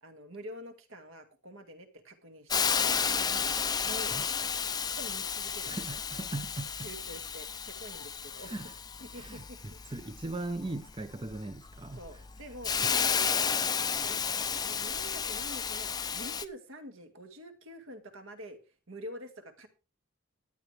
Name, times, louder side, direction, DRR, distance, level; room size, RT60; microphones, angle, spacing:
voice 1, 0.0-5.8 6.8-8.5 9.0-9.8 11.9-13.5 14.0-18.6 18.9-19.7, equal, 65° right, 2.1 m, -47 dB
Hiss, 2.5-16.4, left 6 dB, 20° left, 0.5 m, -32 dB
voice 2, 5.7-6.9 8.4-8.7 9.1-12.0 12.8-12.9, right 2 dB, 20° right, 0.7 m, -39 dB
15.5 x 9.9 x 3.3 m
head